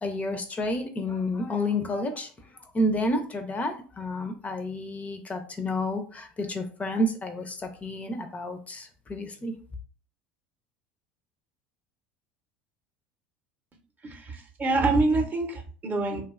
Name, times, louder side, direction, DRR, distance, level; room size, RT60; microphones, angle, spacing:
voice 1, 0.0-2.3 2.7-9.5, left 1 dB, 25° left, 6 dB, 0.4 m, -30 dB
voice 2, 14.0-16.2, right 3 dB, 30° right, 4 dB, 0.6 m, -26 dB
2.5 x 2.2 x 2.4 m, 0.39 s
hypercardioid pair, 80°, 6 cm